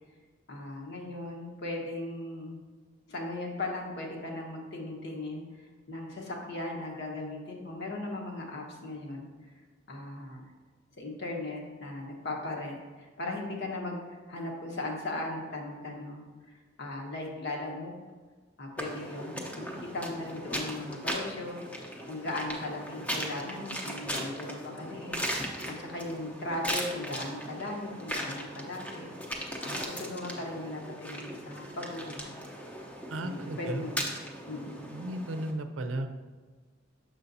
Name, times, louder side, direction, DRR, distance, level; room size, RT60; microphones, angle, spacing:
voice 1, 0.5-2.6 3.1-9.3 9.9-10.4 11.0-17.9 18.6-32.3 33.2-34.1 34.5-34.8, left 2 dB, 60° left, 0 dB, 1.1 m, -38 dB
sound 1, 18.8-35.5, equal, 5° left, 0.7 m, -38 dB
voice 2, 33.1-33.8 34.9-36.1, right 1 dB, 80° right, 8 dB, 0.5 m, -34 dB
6.9 x 6.2 x 2.6 m, 1.4 s
head